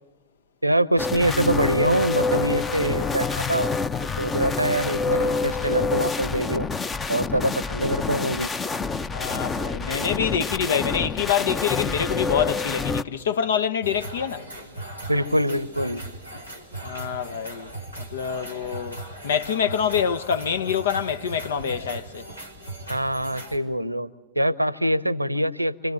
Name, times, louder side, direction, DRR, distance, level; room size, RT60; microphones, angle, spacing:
voice 1, 0.6-3.7 4.2-6.7 7.1-8.5 15.1-16.0 22.9-25.9, right 1 dB, 90° right, 0.8 m, -24 dB
sound 1, 1.0-13.0, left 4 dB, 20° left, 0.8 m, -27 dB
voice 2, 9.1-14.5 16.8-22.3, left 8 dB, 65° left, 1.1 m, -26 dB
sound 2, 13.8-23.6, right 2 dB, 85° left, 4.2 m, -38 dB
27.0 x 26.0 x 7.9 m
figure-of-eight pair, 90°, 0 cm